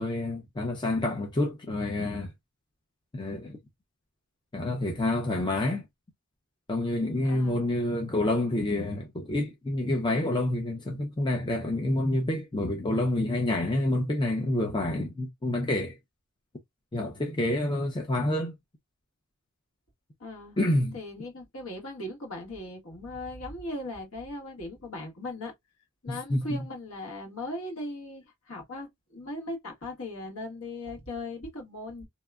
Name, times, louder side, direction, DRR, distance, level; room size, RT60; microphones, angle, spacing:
voice 1, 0.0-2.3 3.1-3.6 4.5-5.8 6.7-16.0 16.9-18.5 20.6-21.0 26.1-26.6, left 1 dB, 20° left, 0.4 m, -28 dB
voice 2, 7.2-7.7 20.2-20.6 20.9-25.5 26.0-32.0, left 1 dB, 70° left, 1.4 m, -38 dB
2.8 x 2.2 x 2.2 m
head